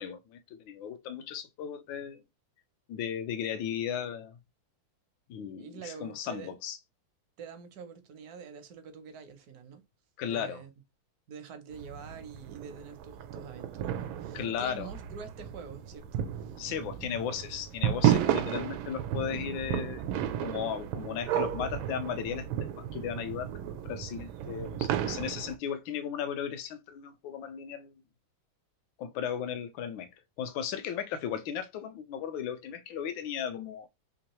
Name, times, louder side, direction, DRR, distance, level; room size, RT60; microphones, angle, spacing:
voice 1, 0.0-2.2 2.9-4.4 5.3-6.8 10.2-10.6 14.3-14.9 16.6-20.0 20.4-23.5 23.8-28.0 29.0-30.1 30.4-33.9, left 8 dB, 80° left, 1.3 m, -36 dB
voice 2, 5.6-6.6 7.4-9.8 10.2-10.7 11.3-16.7, right 6 dB, 65° right, 1.0 m, -46 dB
sound 1, 11.7-25.6, right 10 dB, 85° right, 1.4 m, -33 dB
3.6 x 3.0 x 2.9 m
omnidirectional pair, 2.1 m